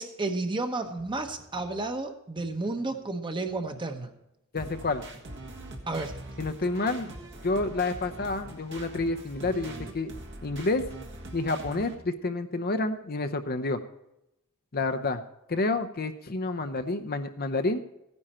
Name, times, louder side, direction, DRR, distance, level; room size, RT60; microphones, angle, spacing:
voice 1, 0.0-4.1 5.9-6.2, right 2 dB, 20° right, 6 dB, 1.1 m, -32 dB
sound 1, 1.0-3.1 3.5-4.2 4.6-7.6 7.9-10.3, equal, 75° right, 1.9 m, -53 dB
voice 2, 4.5-5.0 6.4-7.1 7.4-10.1 10.4-10.9 11.3-13.8 14.7-15.2 15.5-17.8, left 2 dB, 45° left, 9 dB, 0.8 m, -29 dB
sound 2, 4.6-12.0, right 1 dB, 55° right, 1.7 m, -43 dB
15.0 x 9.9 x 4.4 m, 0.88 s
head